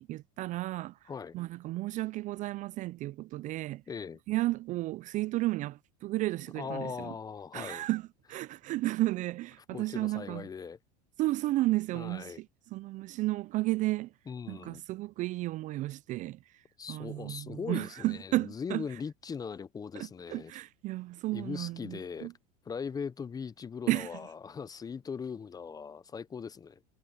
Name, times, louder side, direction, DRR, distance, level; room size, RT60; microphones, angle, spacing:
voice 1, 0.0-1.0 1.3-3.8 4.3-7.1 7.5-10.5 11.2-12.5 12.7-14.1 14.5-16.6 16.9-18.9 19.9-22.3 23.9-24.1, right 18 dB, 40° right, 0.4 m, -33 dB
voice 2, 3.9-4.2 6.6-7.9 9.7-10.8 11.9-12.4 14.3-14.8 16.8-20.5 21.3-22.3 22.6-26.8, left 6 dB, 20° left, 0.6 m, -40 dB
supercardioid pair, 110°, 21 cm